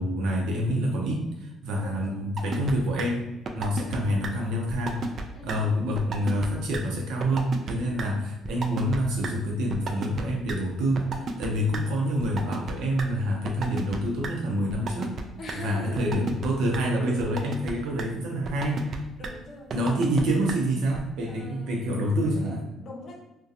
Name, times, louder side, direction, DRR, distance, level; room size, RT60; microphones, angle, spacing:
voice 1, 0.0-5.0 5.4-15.2 15.5-19.0 19.7-22.7, equal, 85° right, 0 dB, 0.6 m, -27 dB
voice 2, 1.8-2.3 3.8-4.0 5.3-5.6 7.8-8.1 11.6-12.1 15.4-16.1 19.2-19.7 21.2-21.9 22.8-23.2, left 2 dB, 45° left, 1 dB, 0.6 m, -42 dB
sound 1, 2.4-2.7 3.0-3.1 3.5-4.0 4.2-4.3 4.7-5.2 5.5-5.6 5.9-6.5 6.7-6.8 7.2-7.7 8.0-8.1 8.4-9.0 9.2-9.3 9.7-10.2 10.5-10.6 11.0-11.8 12.2-13.0 13.5-14.0 14.2-14.3 14.7-15.2 15.5-15.6 15.9-16.5 16.7-16.8 17.2-17.7 18.0-18.1 18.4-19.0 19.2-19.3 19.7-20.2 20.5-20.6 20.9-21.0, right 4 dB, 45° right, 0.3 m, -32 dB
2.7 x 2.2 x 2.4 m, 0.94 s
cardioid pair, 120°, 0 cm